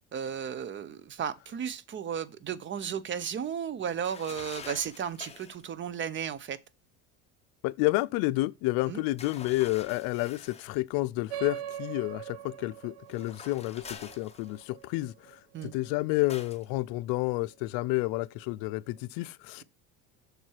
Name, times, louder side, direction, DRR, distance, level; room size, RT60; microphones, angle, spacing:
voice 1, 0.1-6.6 8.9-9.0 15.5-15.7, right 8 dB, 35° right, 0.6 m, -34 dB
sound 1, 4.0-5.6 9.2-10.7 13.1-14.8 16.3-16.7, left 5 dB, 15° left, 1.0 m, -46 dB
voice 2, 7.6-19.6, left 20 dB, 75° left, 0.5 m, -30 dB
sound 2, 11.3-16.2, right 11 dB, 80° right, 0.8 m, -42 dB
6.7 x 4.5 x 4.6 m
cardioid pair, 115°, 36 cm